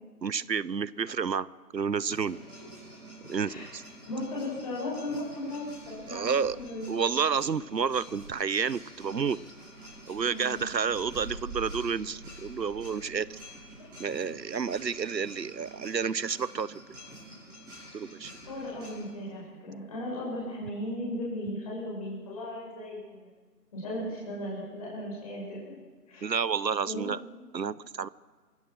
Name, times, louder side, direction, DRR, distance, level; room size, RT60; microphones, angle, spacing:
voice 1, 0.2-1.5 1.7-2.4 3.3-3.8 6.1-6.6 6.9-9.4 10.1-13.4 14.0-16.8 17.9-18.3 26.2-27.2 27.5-28.1, right 6 dB, 90° right, 20 dB, 0.9 m, -30 dB
sound 1, 2.1-19.1, right 1 dB, 10° right, 7.6 m, -47 dB
voice 2, 4.0-6.3 6.5-6.9 10.3-10.6 18.4-23.2 23.7-25.7 26.1-26.3 26.8-27.1, left 1 dB, 20° left, -5 dB, 6.4 m, -36 dB
27.5 x 16.0 x 6.2 m, 1.4 s
figure-of-eight pair, 165°, 49 cm